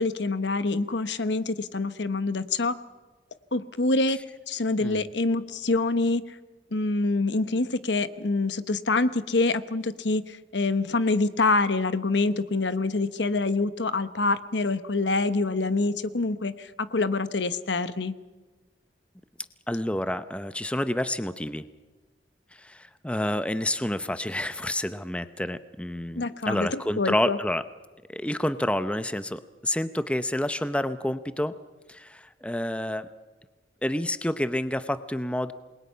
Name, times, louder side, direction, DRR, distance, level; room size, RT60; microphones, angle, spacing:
voice 1, 0.0-2.7 3.5-4.2 4.5-6.2 6.7-18.1 26.2-27.4, left 3 dB, 85° left, 13 dB, 1.1 m, -26 dB
voice 2, 19.7-21.6 22.5-27.6 28.1-31.5 31.9-33.1 33.8-35.5, left 1 dB, 5° left, 12 dB, 0.7 m, -29 dB
28.5 x 21.5 x 5.7 m, 1.3 s
head